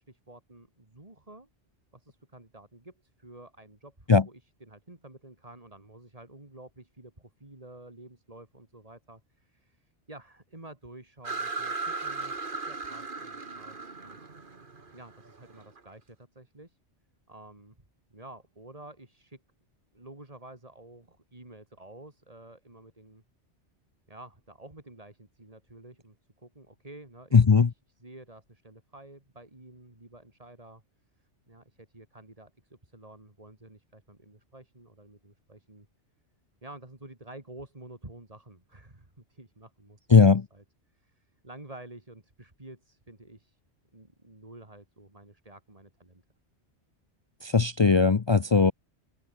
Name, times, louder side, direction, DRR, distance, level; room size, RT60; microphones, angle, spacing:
voice 1, 0.0-1.5 1.9-12.3 12.7-14.2 14.9-16.8 17.3-17.7 18.1-19.4 19.9-23.2 24.1-30.8 31.2-35.9 36.6-40.1 40.5-40.6 40.9-43.6 43.9-46.2, right 2 dB, 30° right, 3.3 m, -50 dB
sound 1, 11.2-15.8, right 4 dB, 45° right, 2.0 m, -36 dB
voice 2, 27.3-27.7 40.1-40.5 47.4-48.7, left 5 dB, 40° left, 0.4 m, -19 dB
open air
omnidirectional pair, 1.2 m